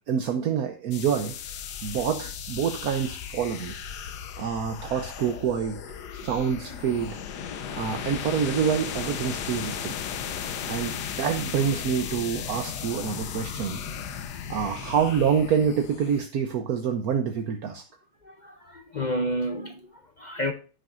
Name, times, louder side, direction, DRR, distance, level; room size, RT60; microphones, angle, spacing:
voice 1, 0.1-1.3 1.8-3.7 4.4-5.8 6.1-7.2 7.7-9.9 10.7-13.8 14.5-17.8, right 7 dB, 70° right, 1.3 m, -27 dB
sound 1, 0.9-16.2, left 8 dB, 85° left, 1.5 m, -36 dB
voice 2, 18.2-20.5, equal, 45° left, 0.6 m, -31 dB
15.5 x 6.4 x 2.6 m
omnidirectional pair, 1.7 m